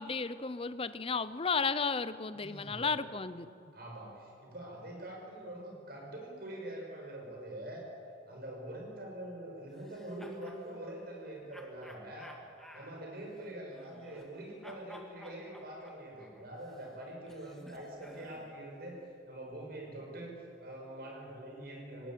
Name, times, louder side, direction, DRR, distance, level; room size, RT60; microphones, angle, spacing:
voice 1, 0.0-3.5, left 4 dB, 30° left, 14 dB, 0.7 m, -33 dB
voice 2, 2.3-2.9 3.7-7.8 8.3-12.3 12.7-19.0 19.2-22.1, right 1 dB, 55° right, 0 dB, 6.3 m, -44 dB
sound 1, 9.7-10.6 11.5-14.4 14.6-18.6, left 1 dB, ahead, 1.9 m, -54 dB
20.0 x 18.0 x 9.4 m, 2.6 s
head